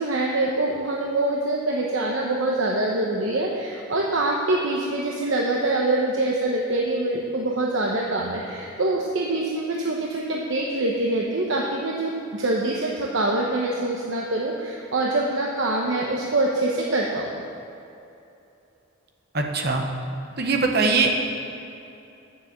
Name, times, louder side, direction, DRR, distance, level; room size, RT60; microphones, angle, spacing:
voice 1, 0.0-17.3, right 2 dB, 65° right, -2 dB, 0.9 m, -25 dB
voice 2, 19.3-19.8 20.4-21.1, right 4 dB, 50° right, 2 dB, 1.1 m, -21 dB
9.7 x 7.4 x 7.3 m, 2.8 s
head